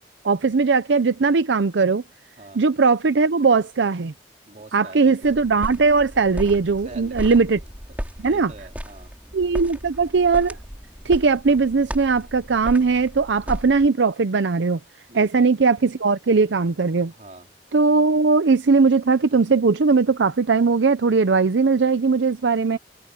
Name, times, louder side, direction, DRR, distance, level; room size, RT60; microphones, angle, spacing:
voice 1, 0.2-2.0 2.5-4.1 4.7-7.6 8.2-8.5 9.3-10.6 11.0-14.8 15.1-17.1 17.7-22.8, right 4 dB, 85° right, 0.6 m, -19 dB
voice 2, 4.5-5.3 6.8-7.4 7.9-8.0 8.2-9.1 15.1-15.5 17.1-17.5, right 2 dB, 45° right, 3.1 m, -43 dB
sound 1, 5.2-13.9, equal, 10° right, 4.3 m, -35 dB
open air
head